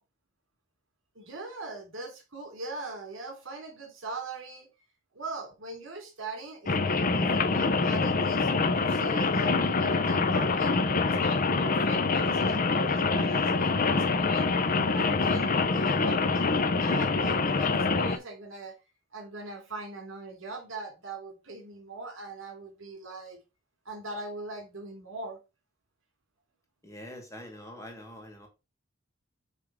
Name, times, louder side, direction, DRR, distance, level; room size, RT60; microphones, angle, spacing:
voice 1, 1.1-4.7 5.1-10.8 11.1-14.5 14.9-18.8 19.1-23.4 23.8-25.4, right 2 dB, 70° right, 3.4 m, -41 dB
Rain, 6.7-18.2, left 4 dB, 45° left, 0.8 m, -25 dB
voice 2, 26.8-28.5, left 1 dB, 15° left, 2.1 m, -44 dB
8.3 x 3.7 x 5.1 m
head